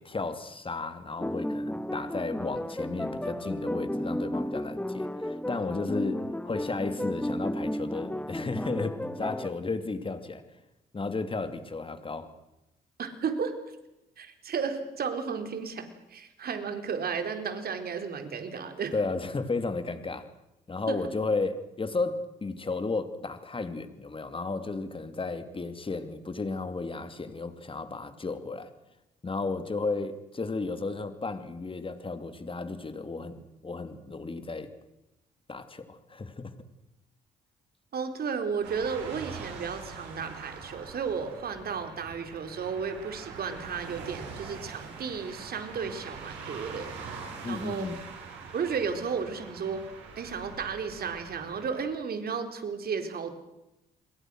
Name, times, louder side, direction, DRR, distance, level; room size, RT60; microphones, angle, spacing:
voice 1, 0.0-10.4 10.9-12.3 18.9-20.3 20.7-28.7 29.2-34.7 35.5-36.5 47.4-48.0, left 3 dB, 30° left, 10 dB, 3.0 m, -33 dB
sound 1, 1.2-9.5, left 1 dB, 5° left, 1.5 m, -33 dB
voice 2, 13.0-13.6 14.2-18.9 20.9-21.0 37.9-46.9 47.4-47.9 48.5-53.3, right 6 dB, 55° right, 7 dB, 4.2 m, -33 dB
sound 2, 38.6-51.8, right 5 dB, 85° right, 6.8 m, -43 dB
30.0 x 22.0 x 6.4 m, 0.91 s
supercardioid pair, 60°, 18 cm